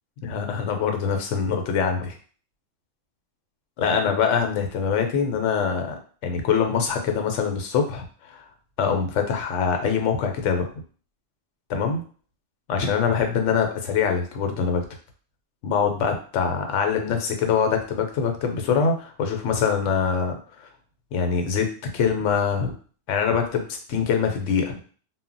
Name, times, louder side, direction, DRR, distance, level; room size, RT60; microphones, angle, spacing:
voice 1, 0.2-2.2 3.8-5.9 6.2-8.4 8.8-10.7 11.7-12.0 12.7-14.8 15.6-20.7 21.1-21.7 21.9-22.7 23.1-24.8, left 6 dB, 75° left, 4 dB, 0.9 m, -24 dB
2.1 x 2.0 x 3.7 m, 0.42 s
omnidirectional pair, 1.3 m